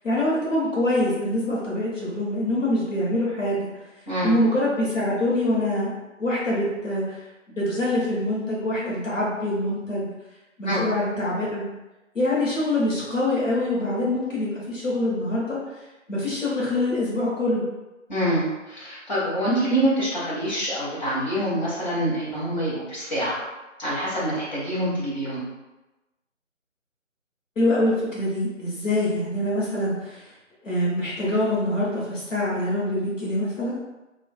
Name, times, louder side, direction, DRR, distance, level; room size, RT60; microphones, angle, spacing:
voice 1, 0.0-3.7 4.2-5.9 6.2-7.2 7.5-10.1 10.6-11.6 12.1-15.8 16.1-17.7 27.6-30.3 30.6-33.8, left 1 dB, 75° left, -6 dB, 0.9 m, -25 dB
voice 2, 18.1-23.4 23.8-25.4, right 1 dB, 35° left, -10 dB, 1.0 m, -26 dB
2.4 x 2.3 x 2.2 m, 1.1 s
figure-of-eight pair, 155°, 39 cm